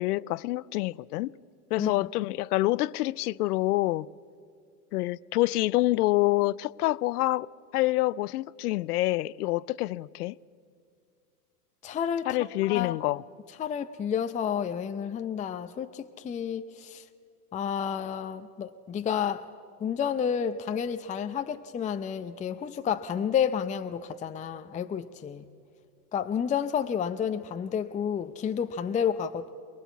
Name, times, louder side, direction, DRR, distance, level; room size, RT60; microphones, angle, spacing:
voice 1, 0.0-1.3 1.7-4.1 4.9-10.3 12.3-13.2, left 18 dB, 75° left, 0.6 m, -27 dB
voice 2, 11.8-12.3 12.7-13.0 13.6-17.0 17.5-19.4 19.8-25.4 26.1-29.5, left 8 dB, 15° left, 0.6 m, -30 dB
23.0 x 21.0 x 8.3 m
hypercardioid pair, 105°, 47 cm